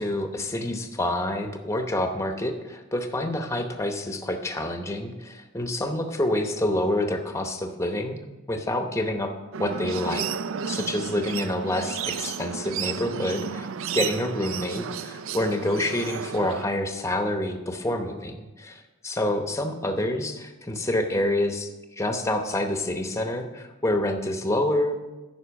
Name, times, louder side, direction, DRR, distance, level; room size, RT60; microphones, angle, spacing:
voice 1, 0.0-8.2 8.5-9.3 9.6-10.2 10.7-13.7 13.9-25.0, left 1 dB, 15° left, 5 dB, 0.8 m, -27 dB
sound 1, 9.5-16.7, right 7 dB, 70° right, 0.4 m, -32 dB
10.0 x 5.5 x 7.0 m, 1.1 s
head